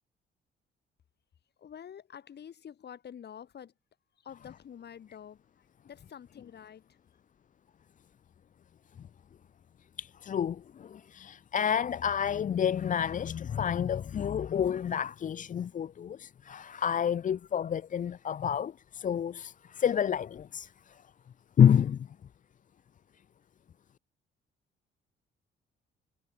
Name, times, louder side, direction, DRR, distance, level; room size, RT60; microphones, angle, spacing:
voice 1, 1.6-3.7 4.2-7.0, left 8 dB, 55° left, 4.0 m, -48 dB
voice 2, 10.0-21.0 21.6-22.1, left 8 dB, 40° left, 0.5 m, -29 dB
cardioid pair, 90°, 20 cm